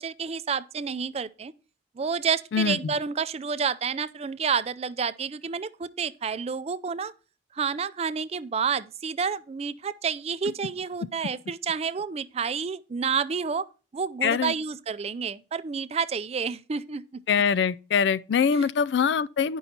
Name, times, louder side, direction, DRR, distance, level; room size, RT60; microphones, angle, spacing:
voice 1, 0.0-1.5 2.0-7.1 7.5-13.7 13.9-17.0 18.5-18.7, right 6 dB, 35° right, 0.4 m, -29 dB
voice 2, 14.2-14.5 17.3-19.6, left 6 dB, 75° left, 0.3 m, -23 dB
10.5 x 5.4 x 4.3 m
head